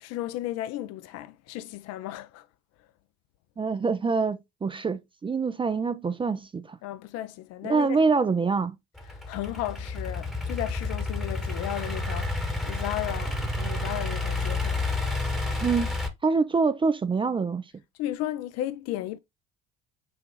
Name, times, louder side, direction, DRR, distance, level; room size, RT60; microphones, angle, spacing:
voice 1, 0.0-2.5 6.8-8.0 9.1-14.9 18.0-19.2, left 13 dB, 60° left, 0.5 m, -34 dB
voice 2, 3.6-6.8 7.7-8.8 15.6-15.9 16.2-17.6, right 4 dB, 20° right, 0.4 m, -25 dB
Idling / Accelerating revving vroom, 9.0-16.1, left 2 dB, ahead, 1.1 m, -30 dB
6.1 x 2.4 x 3.1 m
hypercardioid pair, 60°, 29 cm